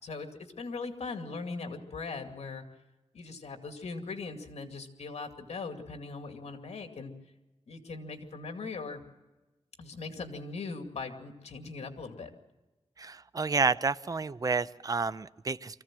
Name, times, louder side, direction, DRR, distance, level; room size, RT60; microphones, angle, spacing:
voice 1, 0.0-2.6 3.1-7.1 7.7-9.0 9.8-12.3, left 4 dB, 80° left, 5 dB, 2.3 m, -40 dB
voice 2, 13.0-15.8, right 4 dB, 35° right, 15 dB, 0.6 m, -30 dB
24.5 x 15.5 x 7.5 m, 1.1 s
cardioid pair, 75°, 11 cm